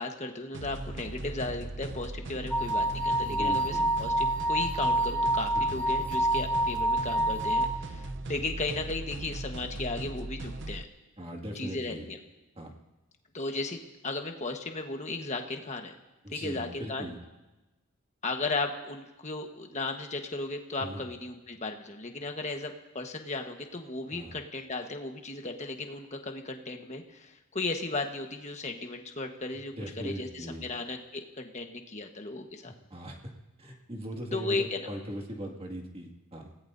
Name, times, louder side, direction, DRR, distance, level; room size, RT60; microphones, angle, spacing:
voice 1, 0.0-10.9 11.5-12.2 13.3-15.9 16.3-17.1 18.2-32.7 34.3-34.8, left 3 dB, 30° left, 4 dB, 1.3 m, -35 dB
sound 1, 0.5-10.8, right 2 dB, 55° right, 0.8 m, -38 dB
sound 2, 2.5-7.7, right 1 dB, 5° left, 1.0 m, -27 dB
voice 2, 3.3-4.0 5.6-5.7 11.2-12.1 12.6-12.7 16.2-17.2 20.8-21.0 24.1-24.3 29.8-30.7 32.6-33.2 33.6-36.5, equal, 25° right, 1 dB, 2.2 m, -39 dB
29.0 x 18.0 x 2.7 m, 1.1 s
head